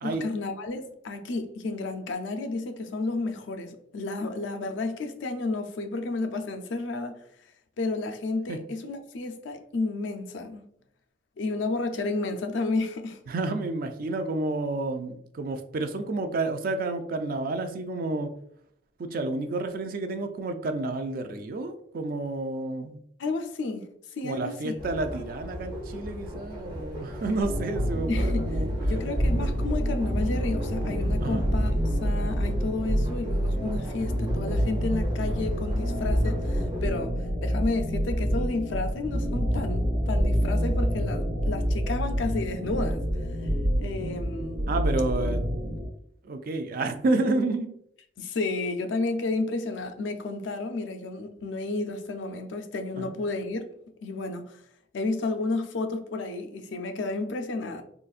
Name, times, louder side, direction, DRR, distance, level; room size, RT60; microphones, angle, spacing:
voice 1, 0.0-7.2 7.8-10.6 11.4-13.2 23.2-23.9 24.2-24.8 28.1-28.5 28.9-43.0 43.8-44.7 48.2-53.7 54.0-54.6 54.9-57.8, left 3 dB, 80° left, 0.4 m, -31 dB
voice 2, 13.3-18.3 19.0-23.0 24.2-28.7 31.2-31.4 44.7-45.4 46.2-47.7 53.0-53.1, right 2 dB, 50° right, 0.3 m, -30 dB
sound 1, 24.8-36.9, equal, 20° right, 0.7 m, -39 dB
sound 2, 27.4-45.9, equal, 75° right, 1.1 m, -27 dB
3.9 x 2.4 x 2.4 m
head